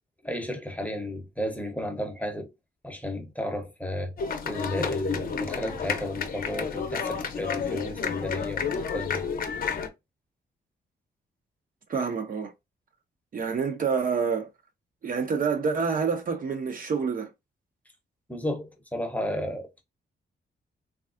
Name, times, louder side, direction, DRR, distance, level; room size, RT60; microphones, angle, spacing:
voice 1, 0.2-2.5 2.8-4.1 4.4-9.2 18.3-19.8, left 1 dB, 10° left, 0.7 m, -33 dB
sound 1, 4.2-9.9, left 5 dB, 50° left, 0.6 m, -31 dB
voice 2, 11.9-12.5 13.3-14.5 15.0-17.3, right 5 dB, 50° right, 0.6 m, -27 dB
3.2 x 2.4 x 2.4 m
cardioid pair, 110°, 19 cm